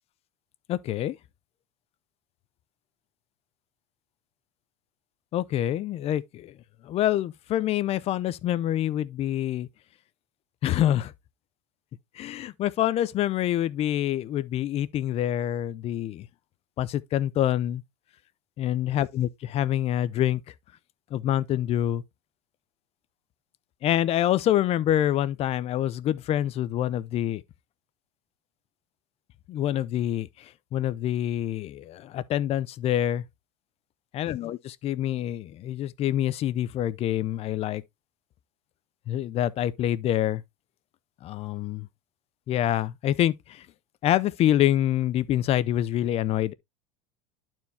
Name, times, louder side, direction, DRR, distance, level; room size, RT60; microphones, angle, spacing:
voice 1, 0.7-1.2 5.3-6.5 6.8-9.7 10.6-11.1 12.2-16.3 16.8-17.8 18.6-20.4 21.1-22.0 23.8-27.4 29.5-33.2 34.1-37.8 39.1-40.4 41.2-41.9 42.5-43.7 44.0-46.5, left 12 dB, 40° left, 0.5 m, -26 dB
11.5 x 4.5 x 2.7 m
supercardioid pair, 125°, 17 cm